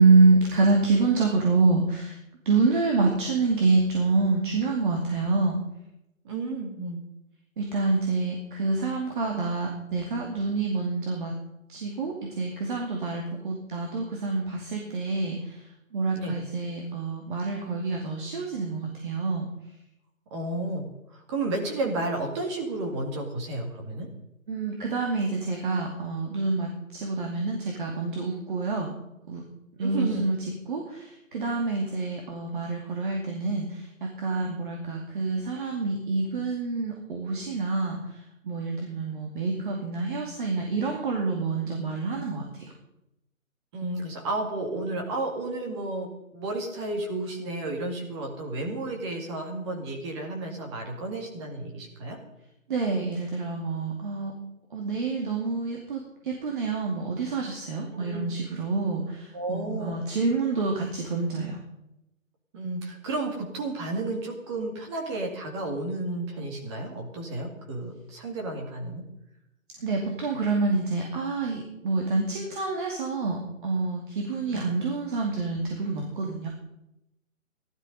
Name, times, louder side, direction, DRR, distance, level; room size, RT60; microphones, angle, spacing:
voice 1, 0.0-2.2 2.4-5.5 7.6-11.3 11.7-15.6 15.9-19.5 24.5-28.9 29.3-29.4 29.8-30.4 30.7-42.7 52.7-54.3 54.7-61.6 69.8-76.5, right 3 dB, 35° right, 0 dB, 2.5 m, -27 dB
voice 2, 6.2-7.0 16.2-16.3 20.3-24.1 29.8-30.2 43.7-52.2 57.9-58.3 59.3-60.0 62.5-69.0 74.5-74.6, right 2 dB, 20° right, 0 dB, 2.2 m, -32 dB
16.0 x 12.0 x 5.3 m, 0.87 s
figure-of-eight pair, 155°, 42 cm